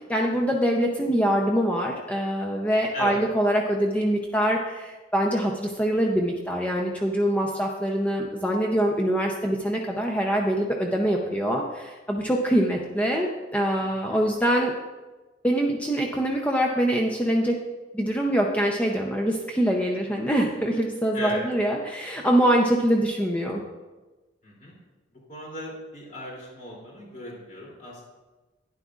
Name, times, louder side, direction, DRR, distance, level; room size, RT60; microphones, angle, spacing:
voice 1, 0.1-14.7 15.4-17.5 17.9-23.6, equal, 10° left, 0 dB, 0.6 m, -24 dB
voice 2, 13.8-14.3 21.1-21.4 24.4-24.7 25.1-28.0, left 1 dB, 45° left, -4 dB, 3.0 m, -37 dB
11.5 x 10.5 x 2.5 m, 1.2 s
head